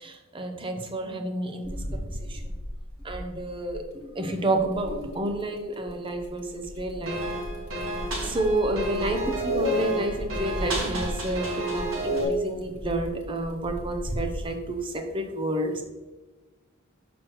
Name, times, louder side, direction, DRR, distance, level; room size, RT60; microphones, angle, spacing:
voice 1, 0.0-2.4 3.0-3.8 4.1-7.2 8.2-15.8, right 1 dB, 25° right, 5 dB, 0.6 m, -30 dB
sound 1, 1.6-4.1 4.6-14.4, equal, 65° left, 1.7 m, -37 dB
sound 2, 7.1-12.2, right 1 dB, 65° right, 1.6 m, -30 dB
6.2 x 6.1 x 3.0 m, 1.2 s
head